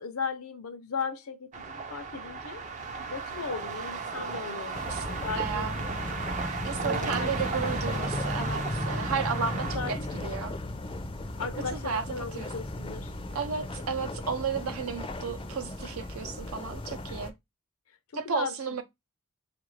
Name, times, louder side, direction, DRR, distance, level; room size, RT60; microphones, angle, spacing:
voice 1, 0.0-2.6 3.1-5.7 6.6-8.0 9.6-10.2 11.4-13.1 17.9-18.0 18.2-18.8, left 5 dB, 75° left, 0.7 m, -37 dB
sound 1, 1.5-9.8, right 4 dB, 35° right, 0.5 m, -35 dB
sound 2, 4.7-17.3, left 1 dB, 25° left, 0.5 m, -35 dB
voice 2, 4.8-5.8 6.6-10.5 11.7-12.0 12.3-12.5 13.3-17.3 18.1-18.8, right 6 dB, 75° right, 0.6 m, -33 dB
3.8 x 2.5 x 3.1 m
head